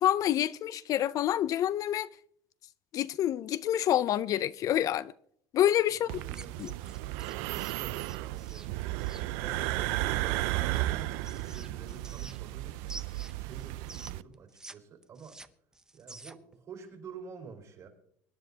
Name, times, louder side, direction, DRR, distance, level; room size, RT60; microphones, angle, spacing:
voice 1, 0.0-2.1 2.9-5.1 5.5-6.2 6.6-6.7, left 11 dB, 50° left, 0.4 m, -27 dB
voice 2, 5.9-6.6 7.4-8.9 9.4-13.1 13.3-15.4 15.9-17.9, right 5 dB, 45° right, 4.1 m, -48 dB
sound 1, 6.1-14.2, right 17 dB, 80° right, 0.4 m, -34 dB
sound 2, 6.3-9.3 10.7-12.6 12.9-14.8 15.0-16.5, right 2 dB, 10° right, 0.6 m, -49 dB
24.5 x 10.5 x 2.8 m
supercardioid pair, 115°, 8 cm